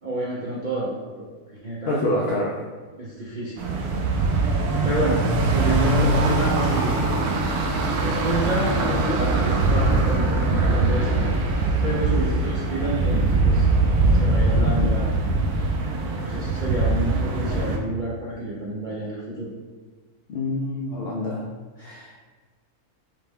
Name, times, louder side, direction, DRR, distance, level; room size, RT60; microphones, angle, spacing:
voice 1, 0.0-2.1 3.0-3.6 4.8-7.1 8.0-11.3 11.8-13.7 14.1-15.1 16.2-19.5, right 1 dB, 60° right, -6 dB, 0.4 m, -29 dB
voice 2, 1.9-2.5 20.3-21.4 21.8-22.2, left 1 dB, 75° left, -2 dB, 0.5 m, -26 dB
sound 1, 3.6-17.8, right 2 dB, 85° right, 1.1 m, -22 dB
5.6 x 2.2 x 3.5 m, 1.4 s
omnidirectional pair, 1.6 m